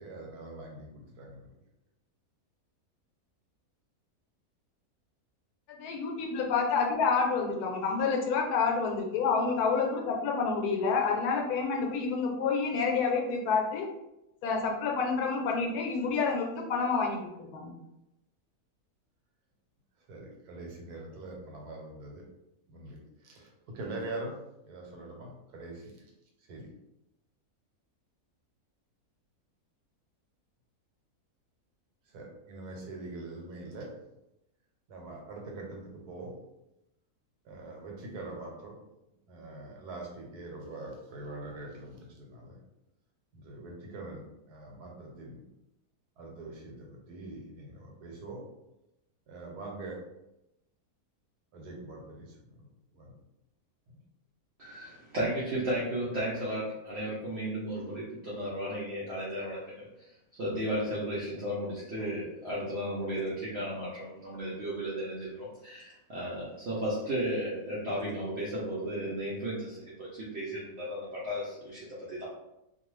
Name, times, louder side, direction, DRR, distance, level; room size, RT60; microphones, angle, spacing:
voice 1, 0.0-1.5 20.1-22.2 22.7-24.3 24.6-25.9 26.5-26.7 32.1-33.9 34.9-36.3 37.4-38.8 39.3-42.6 43.3-45.4 46.2-48.4 49.3-50.0 51.5-52.7 52.9-53.1 53.9-54.0, right 2 dB, 85° right, 0 dB, 1.3 m, -43 dB
voice 2, 5.7-13.9 14.4-17.7, left 5 dB, 80° left, 1 dB, 1.1 m, -28 dB
voice 3, 54.6-72.3, equal, 60° right, -7 dB, 0.8 m, -34 dB
2.5 x 2.4 x 3.0 m, 0.89 s
omnidirectional pair, 1.6 m